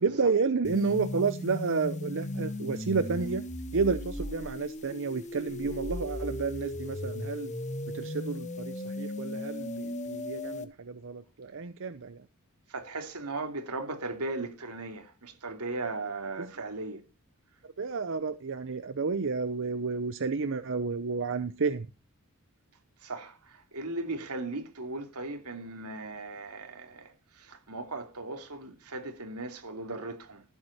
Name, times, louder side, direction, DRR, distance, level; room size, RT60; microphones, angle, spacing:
voice 1, 0.0-3.4 3.7-7.5 7.9-12.2 16.4-16.5 17.8-21.9, right 4 dB, 60° right, 0.7 m, -31 dB
sound 1, 0.6-10.6, left 1 dB, 35° left, 1.4 m, -37 dB
voice 2, 12.7-17.0 23.0-27.1 27.4-30.4, right 2 dB, 90° right, 2.8 m, -37 dB
16.0 x 7.8 x 4.2 m
head